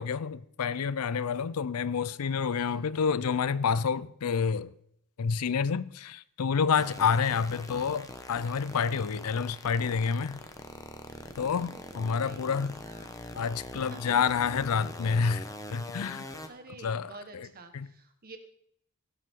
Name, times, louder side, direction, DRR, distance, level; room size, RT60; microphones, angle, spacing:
voice 1, 0.0-4.7 5.2-10.4 11.4-12.8 13.3-16.3 16.8-17.5 17.7-17.9, left 6 dB, 90° left, 0.5 m, -29 dB
sound 1, 6.7-16.5, left 1 dB, 15° left, 1.0 m, -43 dB
voice 2, 11.4-12.5 12.9-13.2 13.7-14.1 16.5-18.4, right 3 dB, 45° right, 1.4 m, -50 dB
16.5 x 8.5 x 3.7 m
head